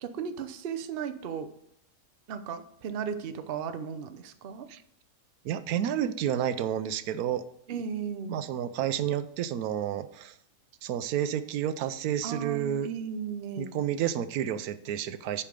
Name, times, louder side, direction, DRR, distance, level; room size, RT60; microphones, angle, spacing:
voice 1, 0.0-1.5 2.3-4.7 7.7-8.3 12.2-13.7, right 7 dB, 50° right, 9 dB, 0.7 m, -35 dB
voice 2, 5.4-7.4 8.3-10.3 10.8-12.9 13.6-15.4, right 10 dB, 85° right, 13 dB, 1.1 m, -30 dB
8.6 x 5.0 x 5.1 m, 0.72 s
omnidirectional pair, 1.5 m